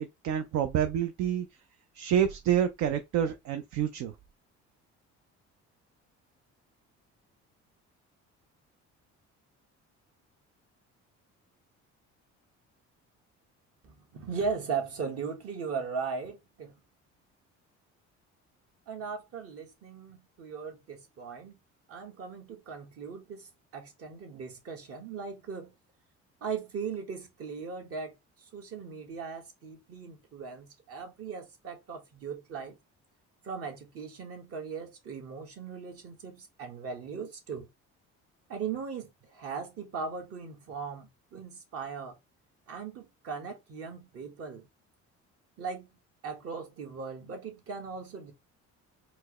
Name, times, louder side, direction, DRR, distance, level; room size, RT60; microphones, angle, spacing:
voice 1, 0.2-1.5 1.9-4.1, right 9 dB, 70° right, 0.5 m, -28 dB
voice 2, 13.8-16.7 18.9-21.6 21.9-25.7 26.4-28.1 28.4-32.8 33.4-37.7 38.5-42.2 42.7-44.6 45.6-45.9 46.2-48.3, right 5 dB, 55° right, 1.4 m, -38 dB
4.4 x 2.1 x 2.9 m
cardioid pair, 115°, 29 cm